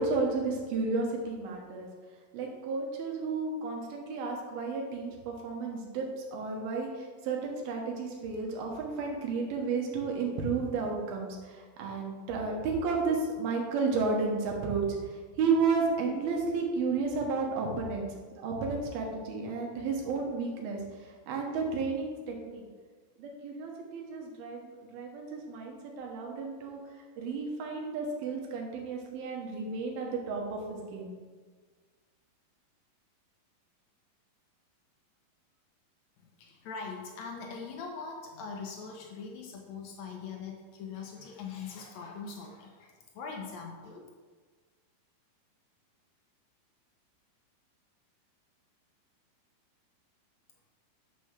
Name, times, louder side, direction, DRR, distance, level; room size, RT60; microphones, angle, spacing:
voice 1, 0.0-1.9 2.3-18.1 18.3-22.6 23.2-26.8 27.2-31.1, right 4 dB, 80° right, 0 dB, 3.1 m, -32 dB
voice 2, 36.2-44.0, left 5 dB, 90° left, 1 dB, 1.5 m, -42 dB
6.8 x 5.6 x 6.4 m, 1.5 s
omnidirectional pair, 4.3 m